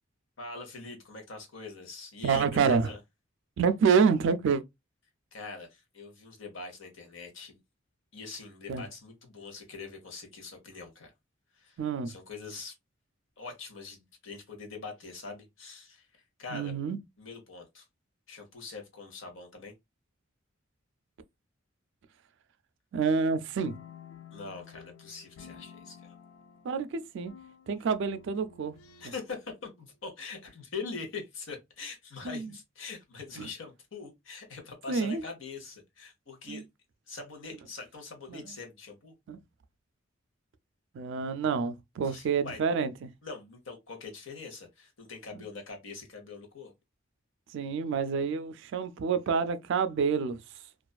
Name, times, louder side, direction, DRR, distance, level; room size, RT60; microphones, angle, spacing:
voice 1, 0.4-3.0 5.3-7.6 8.1-11.1 11.5-11.8 12.1-12.7 13.4-16.1 16.4-16.7 17.2-17.8 18.3-19.7 24.3-26.2 29.0-36.6 37.1-39.1 42.0-42.6 43.2-46.7, left 4 dB, 70° left, 0.9 m, -43 dB
voice 2, 2.2-2.9 3.6-4.6 8.7-8.8 11.8-12.1 16.5-17.0 22.9-23.8 26.6-27.3 27.7-28.7 29.0-29.1 32.2-32.5 33.4-33.5 34.9-35.2 36.5-36.6 38.3-38.5 39.3-39.4 40.9-43.1 45.3-45.4 47.5-50.4, right 5 dB, 65° right, 0.3 m, -28 dB
sound 1, 23.5-29.5, left 7 dB, 90° left, 0.3 m, -52 dB
2.4 x 2.3 x 2.2 m
head